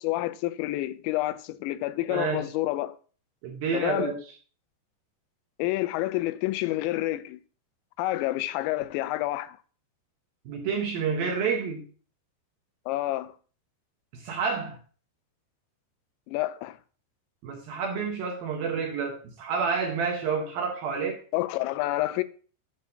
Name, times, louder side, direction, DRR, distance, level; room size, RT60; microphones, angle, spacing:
voice 1, 0.0-3.0 3.7-4.1 5.6-7.4 8.0-9.6 12.9-13.3 16.3-16.8 21.3-22.2, left 16 dB, 85° left, 2.9 m, -28 dB
voice 2, 2.1-2.4 3.4-4.2 10.5-11.8 14.1-14.8 17.4-21.2, right 5 dB, 70° right, 2.5 m, -29 dB
9.4 x 3.5 x 6.7 m
omnidirectional pair, 5.2 m